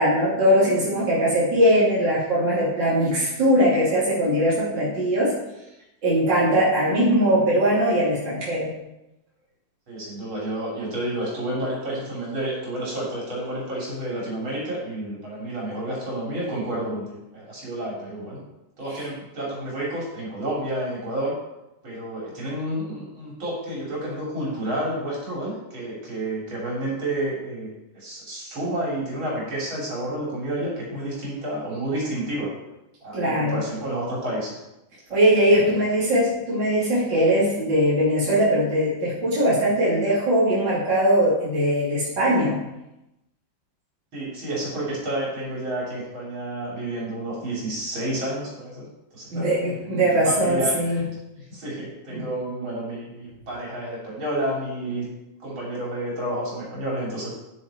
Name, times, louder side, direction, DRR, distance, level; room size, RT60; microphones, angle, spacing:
voice 1, 0.0-5.3 6.0-8.7 33.1-33.6 35.1-42.6 49.3-51.0 52.1-52.2, equal, 65° right, -8 dB, 3.8 m, -20 dB
voice 2, 9.9-18.4 18.8-21.3 21.8-32.5 33.0-34.6 35.1-35.2 35.5-35.9 44.1-48.9 49.1-49.5 49.8-51.1 51.4-55.0 55.4-57.3, right 1 dB, 90° right, -5 dB, 4.7 m, -30 dB
9.8 x 9.7 x 4.5 m, 0.91 s
omnidirectional pair, 2.1 m